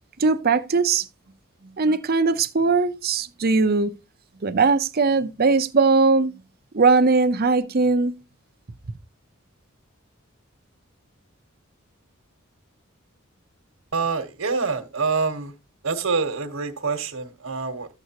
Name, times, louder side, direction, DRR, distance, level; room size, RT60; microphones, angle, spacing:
voice 1, 0.2-1.1 1.8-3.9 4.4-6.3 6.7-8.1, right 4 dB, 50° right, 0.7 m, -20 dB
voice 2, 13.9-15.5 15.8-17.9, right 4 dB, 85° right, 1.3 m, -26 dB
12.5 x 7.9 x 2.9 m
head